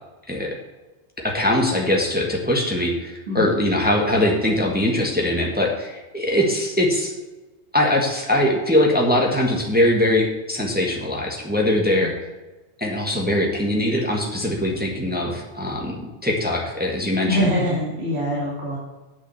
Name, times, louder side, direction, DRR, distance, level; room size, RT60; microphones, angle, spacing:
voice 1, 1.2-7.1 7.7-12.1 12.8-17.4, left 1 dB, 10° right, -1 dB, 1.5 m, -21 dB
voice 2, 17.3-18.8, equal, 65° right, -7 dB, 2.7 m, -23 dB
8.6 x 6.4 x 6.8 m, 1.1 s
omnidirectional pair, 1.2 m